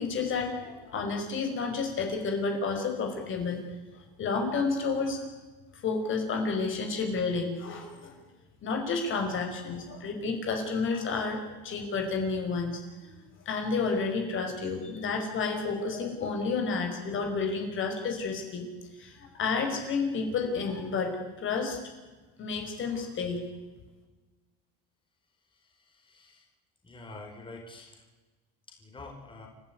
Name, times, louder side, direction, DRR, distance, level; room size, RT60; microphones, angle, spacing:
voice 1, 0.0-3.6 4.2-5.2 5.7-8.2 8.6-13.1 13.5-18.7 19.0-21.8 22.4-23.4, left 4 dB, 40° left, 3 dB, 5.4 m, -31 dB
voice 2, 25.9-26.4 26.8-28.0 28.7-29.5, left 2 dB, 15° left, 1 dB, 5.1 m, -46 dB
30.0 x 12.5 x 9.6 m, 1.2 s
supercardioid pair, 110°, 30 cm